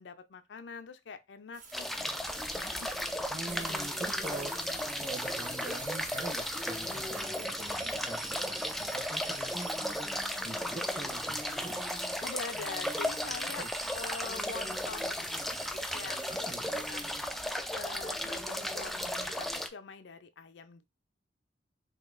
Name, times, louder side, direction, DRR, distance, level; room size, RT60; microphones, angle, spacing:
voice 1, 0.0-3.0 12.2-13.7 14.0-17.1 17.7-20.8, left 5 dB, 65° left, 0.5 m, -44 dB
sound 1, 1.5-17.4 17.7-19.2, right 4 dB, 45° right, 1.4 m, -47 dB
sound 2, 1.7-19.7, left 1 dB, ahead, 0.3 m, -35 dB
voice 2, 3.3-4.6 4.9-9.7 10.4-11.9 13.6-13.7 16.3-16.9, right 2 dB, 20° right, 1.0 m, -43 dB
3.8 x 2.8 x 3.8 m
head